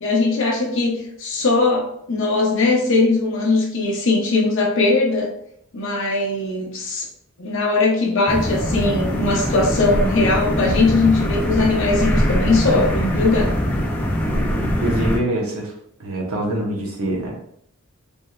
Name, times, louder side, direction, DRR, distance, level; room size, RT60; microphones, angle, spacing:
voice 1, 0.0-5.3 5.7-7.1 7.4-13.5, left 3 dB, 55° left, -1 dB, 0.7 m, -20 dB
sound 1, 8.3-15.2, equal, 5° left, 0.3 m, -22 dB
voice 2, 14.3-15.7 16.0-17.3, right 1 dB, 75° right, -1 dB, 0.9 m, -25 dB
3.3 x 2.7 x 2.3 m, 0.71 s
head